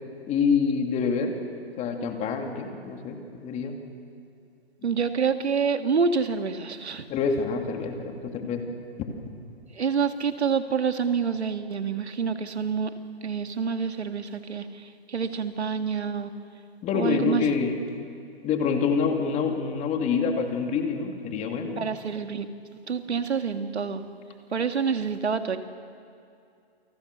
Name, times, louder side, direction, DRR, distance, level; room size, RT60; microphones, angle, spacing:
voice 1, 0.3-1.4 1.8-3.8 7.1-8.6 16.8-17.8 18.4-21.9, left 5 dB, 20° left, 4 dB, 2.7 m, -26 dB
voice 2, 4.8-7.1 9.7-12.9 13.2-16.3 16.9-17.4 21.8-22.5 22.9-24.0 24.5-25.6, right 6 dB, 90° right, 7 dB, 1.9 m, -27 dB
29.0 x 24.5 x 6.8 m, 2.4 s
hypercardioid pair, 140°, 32 cm